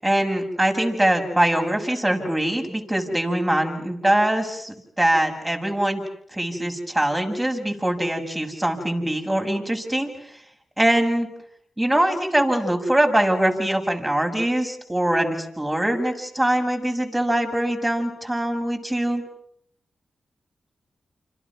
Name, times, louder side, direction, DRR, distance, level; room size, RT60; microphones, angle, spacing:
voice 1, 0.0-6.0 6.3-10.3 10.8-11.3 11.8-19.2, right 1 dB, 15° right, 3 dB, 7.1 m, -23 dB
29.0 x 27.5 x 6.2 m, 0.69 s
supercardioid pair, 45°, 0 cm